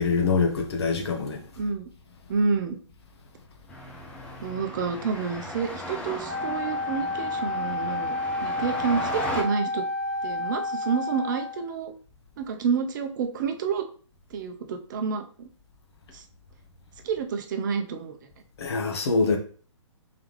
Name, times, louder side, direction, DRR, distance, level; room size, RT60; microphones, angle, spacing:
voice 1, 0.0-1.4 18.6-19.4, left 4 dB, 55° left, 1.0 m, -24 dB
voice 2, 2.3-2.8 4.4-9.8 10.2-11.9 12.4-13.9 14.3-15.5 16.1-16.2 17.0-18.2, right 5 dB, 40° right, 0.6 m, -29 dB
sound 1, 3.7-9.4, left 1 dB, 5° left, 0.4 m, -37 dB
Wind instrument woodwind instrument, 6.3-11.7, left 2 dB, 20° right, 1.1 m, -30 dB
3.8 x 3.5 x 3.2 m
figure-of-eight pair, 135°, 16 cm